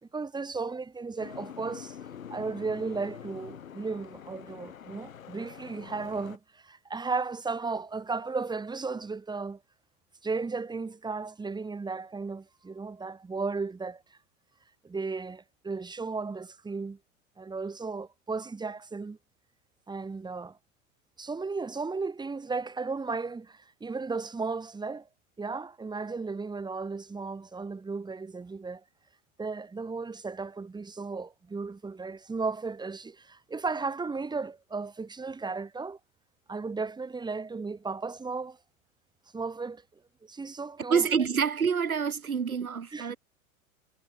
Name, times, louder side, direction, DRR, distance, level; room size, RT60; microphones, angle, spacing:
voice 1, 0.0-2.0 2.3-9.6 10.2-14.2 14.8-17.0 17.4-19.2 19.9-20.6 21.2-25.1 25.4-28.8 29.4-36.0 36.5-38.6 39.3-39.8 40.2-41.1 42.9-43.2, right 4 dB, 10° right, 2.5 m, -35 dB
Boat Water vehicle, 1.2-6.4, left 8 dB, 70° left, 2.0 m, -45 dB
voice 2, 40.9-43.2, right 6 dB, 80° right, 1.6 m, -27 dB
figure-of-eight pair, 90°, 42 cm